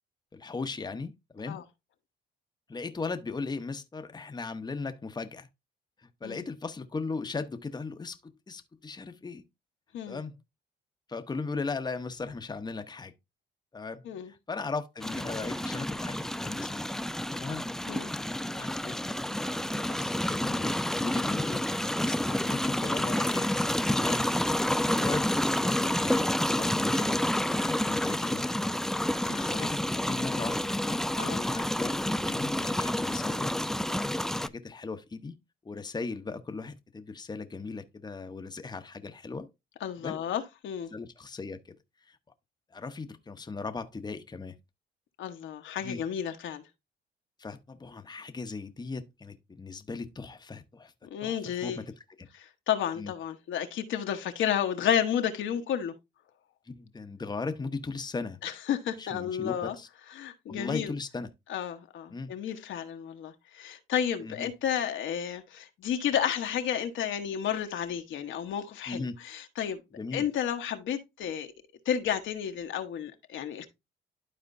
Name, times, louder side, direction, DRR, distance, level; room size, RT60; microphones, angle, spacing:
voice 1, 0.3-1.6 2.7-5.5 6.0-9.5 10.1-10.4 11.1-13.1 13.7-16.8 17.3-17.7 18.5-19.0 19.4-23.5 24.0-24.3 24.6-28.6 29.5-31.1 31.3-33.5 34.1-35.4 35.6-39.5 40.0-40.2 40.9-42.2 42.7-44.6 45.8-46.0 47.4-50.9 51.2-51.8 53.0-53.1 56.7-58.4 59.0-59.9 60.5-61.3 62.1-62.3 64.2-64.5 68.9-69.2 70.0-70.3, left 4 dB, 20° left, 0.9 m, -38 dB
sound 1, 15.0-34.5, left 1 dB, ahead, 0.3 m, -29 dB
voice 2, 29.3-29.7 31.2-31.4 39.8-40.9 45.2-46.6 51.1-51.8 52.4-55.9 58.4-59.7 60.1-60.9 61.5-69.8 70.1-71.5 71.8-73.7, left 9 dB, 75° left, 1.2 m, -32 dB
12.0 x 4.3 x 2.6 m
cardioid pair, 90°, 20 cm